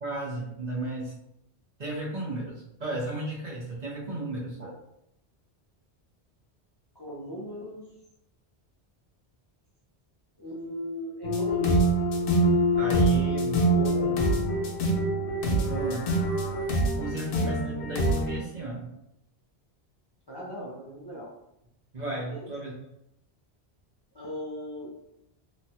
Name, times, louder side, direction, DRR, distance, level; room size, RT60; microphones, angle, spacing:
voice 1, 0.0-1.2 1.8-4.7 12.8-14.2 15.4-16.1 17.0-18.9 21.9-22.7, right 1 dB, 45° right, -5 dB, 0.8 m, -34 dB
voice 2, 6.9-7.8 10.4-11.8 17.1-17.2 20.3-21.3 22.3-22.5 24.1-24.9, equal, 30° left, -7 dB, 0.5 m, -38 dB
sound 1, 11.2-18.4, right 1 dB, 65° left, 0.7 m, -25 dB
3.1 x 2.3 x 2.7 m, 0.80 s
omnidirectional pair, 1.1 m